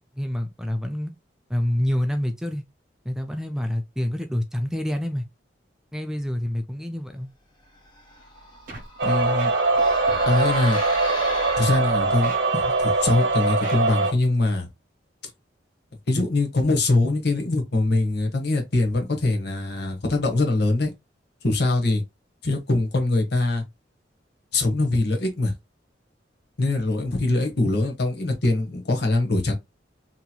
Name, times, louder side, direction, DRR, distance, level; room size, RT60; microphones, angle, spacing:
voice 1, 0.2-1.1 1.5-2.6 3.1-5.3 5.9-7.3, left 1 dB, 5° right, 0.3 m, -27 dB
sound 1, 7.8-12.2, left 2 dB, 25° left, 0.9 m, -37 dB
Scratching (performance technique), 8.7-8.9 9.2-9.8 10.1-10.2 10.8-10.9 11.5-11.7 12.1-13.1 13.5-13.8, right 2 dB, 50° right, 1.0 m, -40 dB
voice 2, 9.0-9.5 10.3-10.8 11.6-14.7 16.1-20.9 21.4-22.0 22.4-23.6 24.5-25.5 26.6-29.5, left 2 dB, 65° left, 0.9 m, -23 dB
sound 2, 9.0-14.1, right 3 dB, 75° right, 0.7 m, -22 dB
2.8 x 2.8 x 2.3 m
head